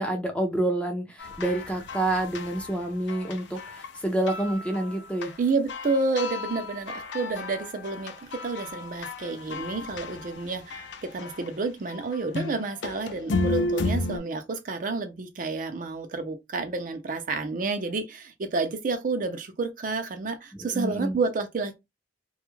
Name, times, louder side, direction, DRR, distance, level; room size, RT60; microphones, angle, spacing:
voice 1, 0.0-5.3 20.5-21.2, right 1 dB, 5° left, 0.4 m, -28 dB
sound 1, 1.2-4.0 4.3-5.4 5.7-11.5 11.9-14.2, left 2 dB, 75° left, 0.4 m, -33 dB
voice 2, 5.4-21.8, right 3 dB, 45° right, 0.4 m, -30 dB
2.3 x 2.1 x 3.0 m
head